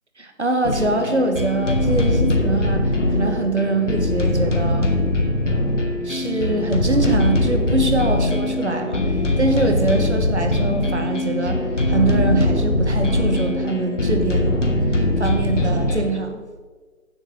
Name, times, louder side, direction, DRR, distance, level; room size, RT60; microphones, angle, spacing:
voice 1, 0.2-4.9 6.0-14.6 14.9-16.4, right 2 dB, 55° right, 5 dB, 1.7 m, -24 dB
sound 1, 0.6-16.1, left 1 dB, 60° left, 1.9 m, -21 dB
16.0 x 7.0 x 3.8 m, 1.4 s
figure-of-eight pair, 180°, 42 cm